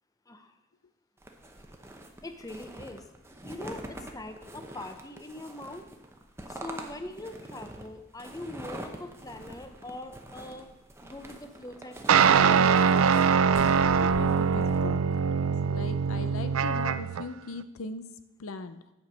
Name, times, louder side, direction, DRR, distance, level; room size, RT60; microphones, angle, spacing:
voice 1, 0.3-0.6 2.2-3.1 3.4-5.9 6.5-10.7 11.0-12.5, left 2 dB, 15° left, 7 dB, 0.6 m, -42 dB
sound 1, 1.2-14.8, right 1 dB, 10° right, 0.8 m, -44 dB
sound 2, 12.1-17.2, right 6 dB, 85° right, 0.4 m, -23 dB
voice 2, 13.7-15.0 15.6-18.1 18.4-18.8, left 3 dB, 85° left, 11 dB, 0.6 m, -39 dB
9.4 x 5.2 x 6.3 m, 0.97 s
head